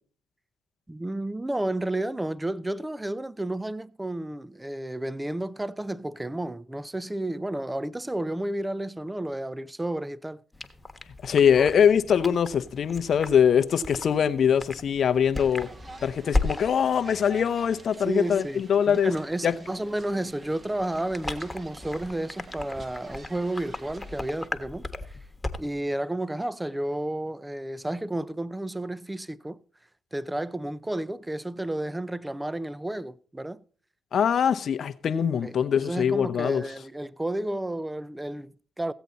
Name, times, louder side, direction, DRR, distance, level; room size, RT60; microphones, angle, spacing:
voice 1, 0.9-10.4 11.6-11.7 18.0-25.2 25.6-29.6 30.1-33.6 35.4-38.9, right 1 dB, 15° right, 0.6 m, -32 dB
sound 1, 10.5-25.8, left 2 dB, 15° left, 1.3 m, -37 dB
voice 2, 11.2-15.7 16.0-19.1 19.4-19.5 34.1-36.6, left 8 dB, 65° left, 0.7 m, -23 dB
sound 2, 15.3-24.5, right 2 dB, 40° right, 1.7 m, -48 dB
15.5 x 8.2 x 4.1 m
supercardioid pair, 60°, 0 cm